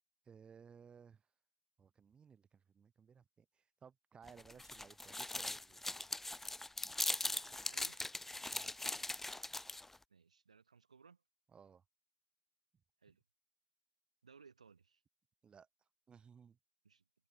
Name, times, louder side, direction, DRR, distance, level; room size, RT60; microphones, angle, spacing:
voice 1, 0.3-1.2 1.8-5.8 8.4-8.7 11.5-11.8 15.4-15.7 16.1-16.6, right 6 dB, 25° right, 7.2 m, -60 dB
sound 1, 4.3-10.0, left 2 dB, 5° left, 0.4 m, -41 dB
voice 2, 7.2-8.0 10.1-11.2 13.0-13.2 14.2-15.0 16.8-17.0, right 5 dB, 80° right, 7.4 m, -63 dB
figure-of-eight pair, 70°, 4 cm